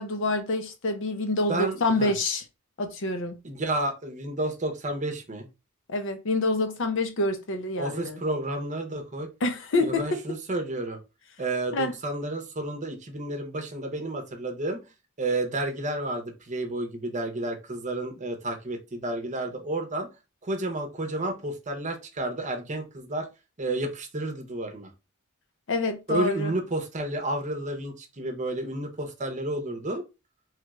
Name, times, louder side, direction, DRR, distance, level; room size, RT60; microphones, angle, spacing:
voice 1, 0.0-2.4 2.8-3.4 5.9-8.2 9.4-10.2 11.7-11.9 25.7-26.5, left 2 dB, 65° left, 0.6 m, -27 dB
voice 2, 1.5-2.1 3.4-5.5 7.8-9.3 9.8-11.0 11.4-14.8 15.2-20.1 20.4-23.3 23.6-24.9 26.1-30.0, right 2 dB, 35° right, 0.8 m, -31 dB
3.2 x 2.4 x 3.1 m
head